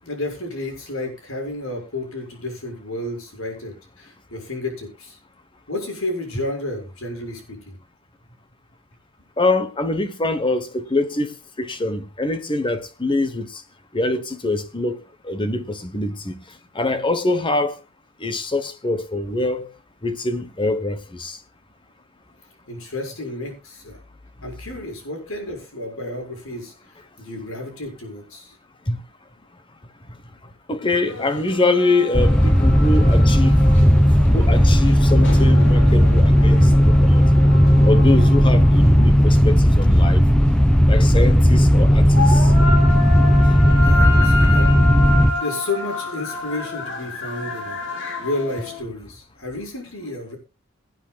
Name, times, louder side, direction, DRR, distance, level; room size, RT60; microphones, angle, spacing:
voice 1, 0.0-5.2 5.7-7.7 22.7-24.0 24.4-26.7 27.2-28.5 43.8-44.7 45.4-47.8 48.2-50.4, left 2 dB, 75° left, 6.6 m, -31 dB
voice 2, 9.4-13.6 13.9-15.0 15.2-16.4 16.7-17.8 18.2-19.7 20.0-21.4 28.9-29.0 30.7-33.6 34.3-37.2 37.8-40.2 40.9-42.5, left 2 dB, 25° left, 1.2 m, -24 dB
sound 1, 31.0-48.8, left 2 dB, 60° left, 3.6 m, -30 dB
sound 2, 32.1-45.3, equal, 5° left, 0.7 m, -14 dB
24.5 x 9.2 x 2.4 m
head